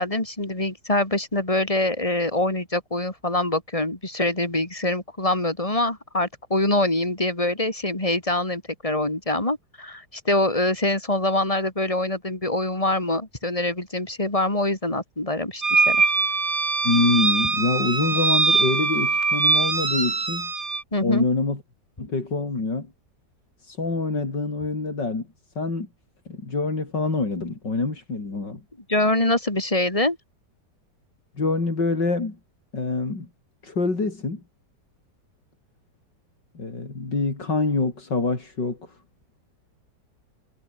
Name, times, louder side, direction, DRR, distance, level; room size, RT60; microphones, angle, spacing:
voice 1, 0.0-16.0 20.9-21.3 28.9-30.2, left 2 dB, 20° left, 4.1 m, -24 dB
sound 1, 15.6-20.8, right 4 dB, 40° right, 2.6 m, -22 dB
voice 2, 16.8-20.5 21.0-21.6 22.0-22.9 23.6-25.3 25.6-25.9 26.3-28.6 31.4-32.4 32.7-33.3 33.6-34.4 36.5-39.0, left 3 dB, 85° left, 5.3 m, -25 dB
omnidirectional pair, 1.9 m